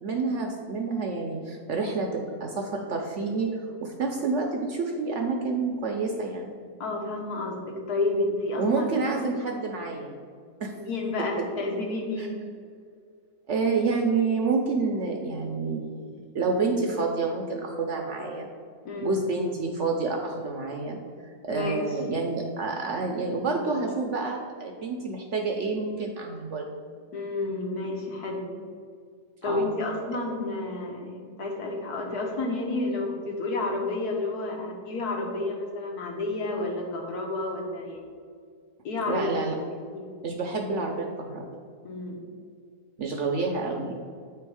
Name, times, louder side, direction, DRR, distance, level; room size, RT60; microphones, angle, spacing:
voice 1, 0.0-6.5 8.6-10.1 10.6-10.7 12.2-12.3 13.5-18.5 19.0-21.0 21.4-26.7 29.4-29.7 39.1-39.5 40.2-41.5 43.0-43.9, right 4 dB, 60° right, 2 dB, 0.8 m, -28 dB
voice 2, 6.8-9.3 10.7-12.4 18.8-19.1 21.5-22.0 27.1-28.6 29.4-38.0 38.8-39.3 39.9-40.2 41.8-42.3, left 2 dB, 70° left, 1 dB, 1.5 m, -30 dB
8.5 x 3.5 x 4.7 m, 2.1 s
omnidirectional pair, 1.7 m